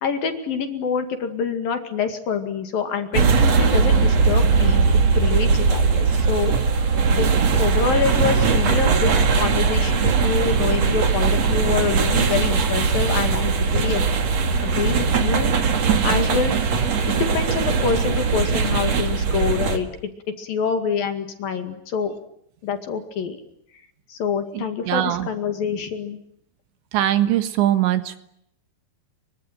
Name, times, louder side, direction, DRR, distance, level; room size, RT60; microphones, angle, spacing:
voice 1, 0.0-14.1 14.6-20.1 20.4-22.1 22.6-23.4 24.1-26.2, left 6 dB, 55° left, 7 dB, 3.6 m, -26 dB
sound 1, 3.1-19.8, right 5 dB, 45° right, 2.6 m, -19 dB
voice 2, 24.5-25.3 26.9-28.2, right 12 dB, 75° right, 10 dB, 3.7 m, -21 dB
27.0 x 24.0 x 9.3 m, 0.73 s
omnidirectional pair, 5.4 m